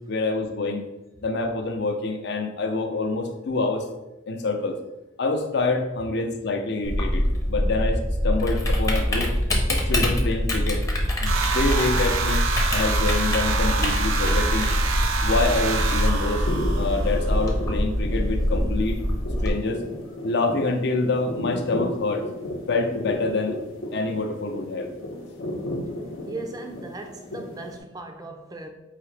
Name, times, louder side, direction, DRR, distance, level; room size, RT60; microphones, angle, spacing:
voice 1, 0.1-0.9 1.2-3.9 4.3-4.8 5.2-9.3 9.7-10.8 11.2-12.4 12.7-14.7 15.2-16.5 16.8-19.0 19.4-19.8 20.2-22.2 22.7-23.6 23.9-24.9, left 3 dB, 55° left, 0.6 m, -26 dB
Typing, 6.8-19.5, equal, 15° left, 0.7 m, -24 dB
sound 1, 11.3-17.4, right 5 dB, 85° right, 0.5 m, -27 dB
sound 2, 16.4-27.8, left 1 dB, 90° left, 0.8 m, -34 dB
voice 2, 26.3-28.7, right 2 dB, 20° right, 0.4 m, -37 dB
4.8 x 2.8 x 3.3 m
head